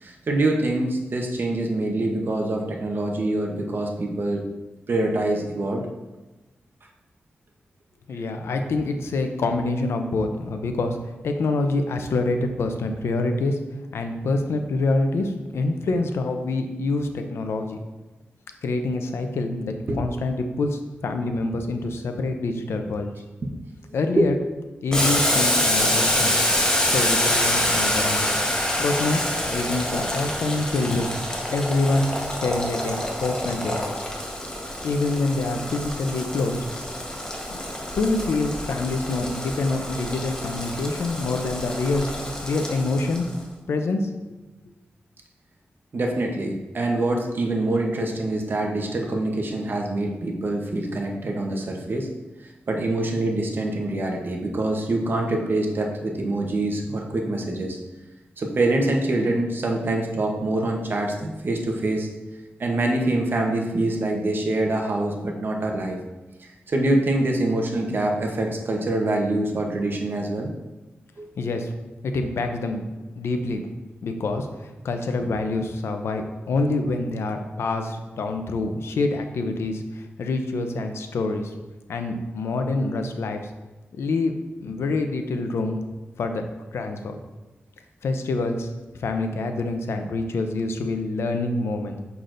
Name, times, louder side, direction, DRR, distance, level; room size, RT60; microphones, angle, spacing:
voice 1, 0.0-4.4 4.9-5.8 19.9-20.0 24.2-24.3 45.9-52.1 52.7-57.8 58.4-62.1 62.6-66.0 66.4-70.5 71.2-71.3, right 2 dB, 55° right, 1 dB, 0.9 m, -25 dB
voice 2, 8.1-11.0 11.2-13.6 13.9-17.8 18.6-23.1 23.9-24.4 24.8-26.3 26.9-28.4 28.8-29.2 29.5-31.1 31.5-32.1 32.4-34.0 34.8-36.6 38.0-42.1 42.4-43.3 43.7-44.1 71.4-71.7 72.0-72.9 73.2-73.6 74.0-81.5 81.9-83.4 83.9-84.3 84.6-85.8 86.2-86.4 86.7-87.2 88.0-88.7 89.0-92.0, left 3 dB, 85° left, 6 dB, 0.6 m, -26 dB
Boiling, 24.9-43.3, left 1 dB, 15° left, 1.1 m, -26 dB
6.8 x 5.9 x 2.5 m, 1.1 s
wide cardioid pair, 95°, 4 cm